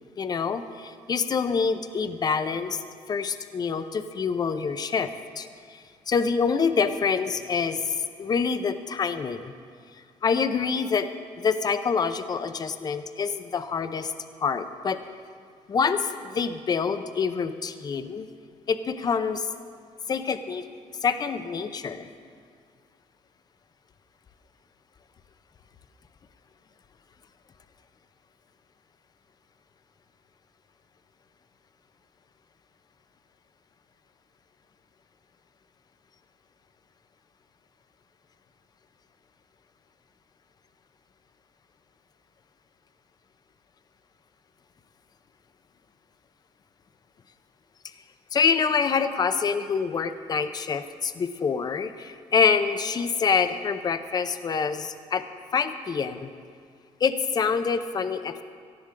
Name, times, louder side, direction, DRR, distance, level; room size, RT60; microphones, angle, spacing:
voice 1, 0.2-5.8 6.1-9.5 10.2-11.1 11.4-14.1 14.4-15.0 15.7-18.3 18.7-19.5 20.1-20.6 21.0-22.1 48.3-55.2 55.5-56.3 57.0-58.4, left 5 dB, 30° left, 10 dB, 0.6 m, -26 dB
18.0 x 14.5 x 3.7 m, 2.1 s
cardioid pair, 145°, 12 cm